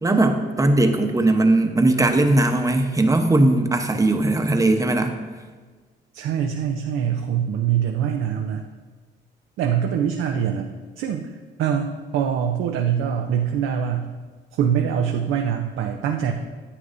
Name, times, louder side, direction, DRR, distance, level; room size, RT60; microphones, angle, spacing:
voice 1, 0.0-5.1, right 2 dB, 15° right, 5 dB, 0.9 m, -19 dB
voice 2, 6.1-8.6 9.6-10.7 11.0-11.3 11.6-14.1 14.6-16.3, right 8 dB, 85° right, 3 dB, 0.6 m, -23 dB
9.8 x 8.5 x 2.6 m, 1.4 s
cardioid pair, 90°, 20 cm